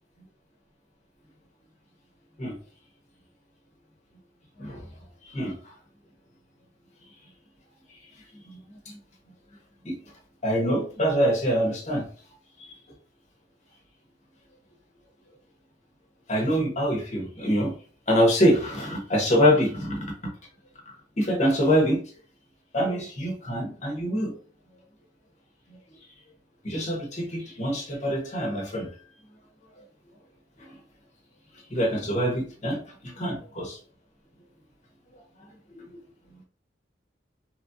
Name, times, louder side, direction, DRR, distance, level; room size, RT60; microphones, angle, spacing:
voice 1, 5.2-5.7 7.9-8.0 8.3-8.6 8.8-9.0 9.8-10.1 10.4-12.1 12.6-12.7 16.3-17.7 18.1-20.3 21.2-22.0 22.7-24.3 25.7-25.8 26.6-29.0 29.8-29.9 30.6-30.8 31.7-33.8 35.7-36.0 36.3-36.4, equal, 40° left, 0 dB, 0.8 m, -25 dB
3.0 x 2.4 x 2.6 m, 0.43 s
head